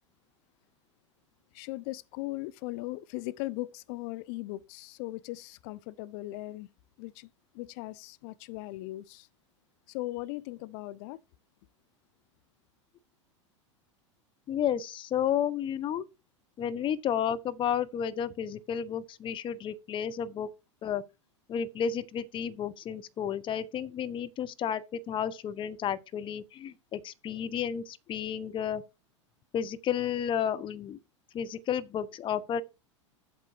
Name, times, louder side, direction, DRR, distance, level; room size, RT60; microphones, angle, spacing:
voice 1, 1.5-6.7 7.0-7.3 7.5-9.3 9.9-11.2, left 19 dB, 50° left, 0.6 m, -38 dB
voice 2, 14.5-16.0 16.6-20.5 20.8-21.0 21.5-28.8 29.5-31.0 31.3-32.6, left 8 dB, 30° left, 1.1 m, -32 dB
8.5 x 6.7 x 4.6 m
figure-of-eight pair, 90°, 16 cm